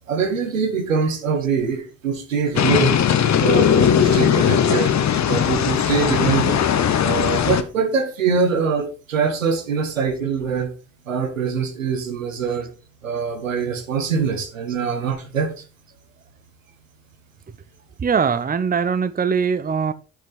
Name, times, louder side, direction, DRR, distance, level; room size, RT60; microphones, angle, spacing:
voice 1, 0.1-3.0 3.4-5.0 5.3-6.6 7.0-10.7 11.1-12.7 13.0-15.6, right 5 dB, 85° right, 1.4 m, -23 dB
sound 1, 2.6-7.6, left 9 dB, 45° left, 1.2 m, -18 dB
voice 2, 18.0-19.9, right 6 dB, 25° right, 0.8 m, -21 dB
10.5 x 6.1 x 4.4 m
figure-of-eight pair, 40°, 38 cm